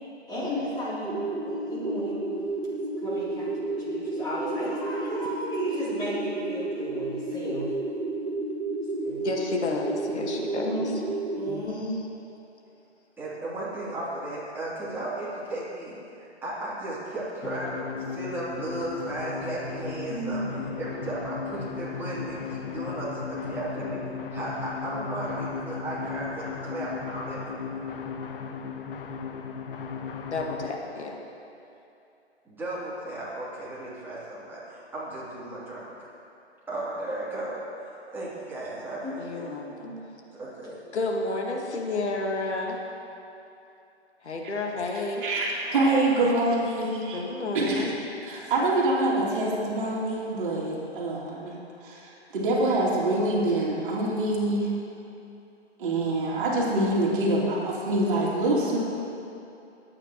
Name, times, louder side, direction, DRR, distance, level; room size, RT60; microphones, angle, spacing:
voice 1, 0.3-2.3 3.0-7.7 9.0-9.2 10.4-10.9 11.3-11.9 20.1-20.7 39.0-39.9, equal, 10° left, -9 dB, 3.2 m, -34 dB
sound 1, 1.0-11.6, right 2 dB, 80° right, 1.4 m, -31 dB
voice 2, 9.2-11.0 11.5-11.6 30.3-31.1 39.2-39.9 40.9-42.8 44.2-45.2 47.1-47.9, left 2 dB, 75° left, 0 dB, 1.8 m, -31 dB
voice 3, 13.2-20.4 20.8-27.8 32.4-35.9 36.7-37.6 38.1-39.4 40.3-40.8, right 1 dB, 5° right, -10 dB, 2.9 m, -35 dB
sound 2, 17.4-30.7, left 6 dB, 50° left, 0.9 m, -36 dB
voice 4, 45.2-47.2 47.5-47.9 48.3-51.6 51.8-54.7 55.8-58.8, right 2 dB, 50° right, -4 dB, 2.8 m, -25 dB
21.5 x 8.9 x 3.0 m, 2.8 s
hypercardioid pair, 140°, 34 cm